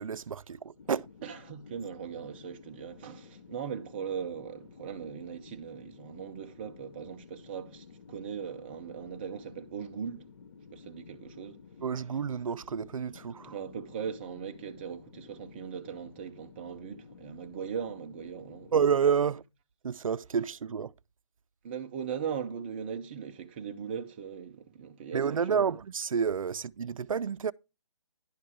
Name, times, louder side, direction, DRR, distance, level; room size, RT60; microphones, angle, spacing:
voice 1, 0.0-1.1 11.8-13.6 18.7-19.4 19.8-20.9 25.1-27.5, right 7 dB, 85° right, 0.4 m, -29 dB
sound 1, 0.8-19.0, left 5 dB, 50° left, 0.7 m, -53 dB
voice 2, 1.2-10.3 10.7-11.6 13.4-18.7 21.6-25.8, right 7 dB, 20° right, 0.6 m, -39 dB
11.0 x 4.6 x 4.8 m
hypercardioid pair, 160°, 17 cm